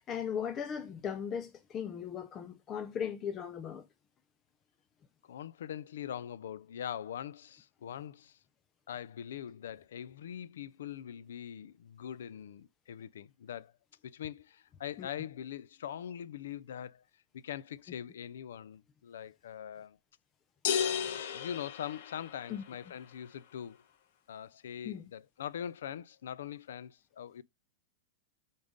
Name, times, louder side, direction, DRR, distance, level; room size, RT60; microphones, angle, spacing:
voice 1, 0.0-3.9 15.0-15.1 22.5-22.6 24.8-25.1, left 8 dB, 20° left, 0.4 m, -37 dB
voice 2, 5.2-8.4 8.9-13.7 14.0-17.0 17.3-20.0 20.8-23.8 24.3-27.4, left 9 dB, 90° left, 0.4 m, -42 dB
sound 1, 20.6-22.7, left 8 dB, 55° left, 0.8 m, -34 dB
8.7 x 4.0 x 3.6 m
supercardioid pair, 170°, 0 cm